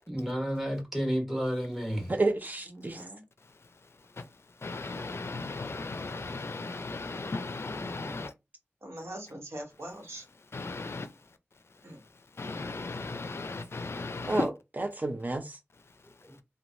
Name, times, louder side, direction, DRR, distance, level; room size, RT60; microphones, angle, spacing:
voice 1, 0.1-2.1 16.2-16.3, equal, 5° right, 1.1 m, -31 dB
voice 2, 2.1-3.1 14.3-14.5 14.8-15.6, right 2 dB, 35° right, 0.7 m, -30 dB
voice 3, 2.7-3.2 8.8-10.2 11.8-12.0, right 1 dB, 65° right, 1.1 m, -42 dB
voice 4, 4.6-8.3 10.5-11.1 12.4-14.4, left 3 dB, 60° left, 0.4 m, -36 dB
3.1 x 2.2 x 2.6 m
wide cardioid pair, 65°, 5 cm